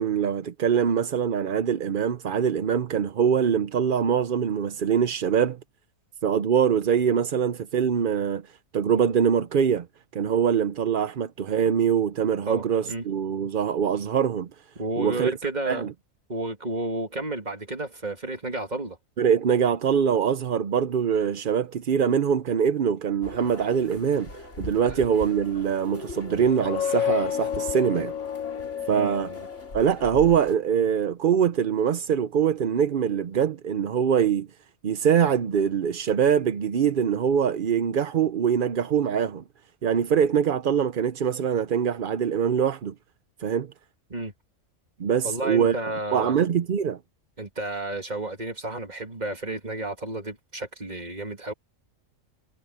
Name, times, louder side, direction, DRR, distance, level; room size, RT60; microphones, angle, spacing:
voice 1, 0.0-5.6 6.2-8.4 8.7-9.9 10.1-14.5 15.0-15.3 15.7-15.9 19.2-24.3 24.6-28.1 28.9-29.3 29.7-34.5 34.8-39.4 39.8-42.9 43.4-43.7 45.0-45.7 46.1-47.0, right 7 dB, 50° right, 0.7 m, -23 dB
voice 2, 12.5-13.1 14.8-15.9 16.3-19.0 24.7-25.1 28.9-29.5 44.1-44.3 45.2-46.4 47.4-51.5, right 2 dB, 35° right, 2.6 m, -32 dB
sound 1, 23.2-30.6, left 2 dB, 60° left, 4.7 m, -41 dB
sound 2, 26.4-30.0, left 9 dB, 85° left, 1.2 m, -30 dB
omnidirectional pair, 1.4 m